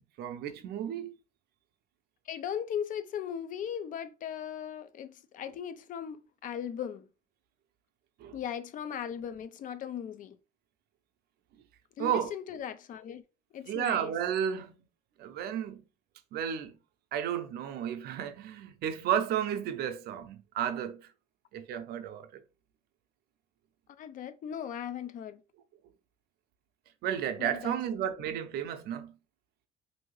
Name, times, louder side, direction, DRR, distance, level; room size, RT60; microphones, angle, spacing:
voice 1, 0.2-1.1 8.2-8.4 12.0-12.3 13.7-14.7 15.2-15.8 16.3-16.8 17.1-21.1 21.5-22.4 27.0-29.1, right 9 dB, 70° right, 0.5 m, -32 dB
voice 2, 2.3-7.1 8.3-10.4 12.0-13.2 13.5-14.1 24.0-25.4 27.4-28.0, left 8 dB, 50° left, 0.5 m, -38 dB
2.7 x 2.7 x 3.1 m
cardioid pair, 110°, 17 cm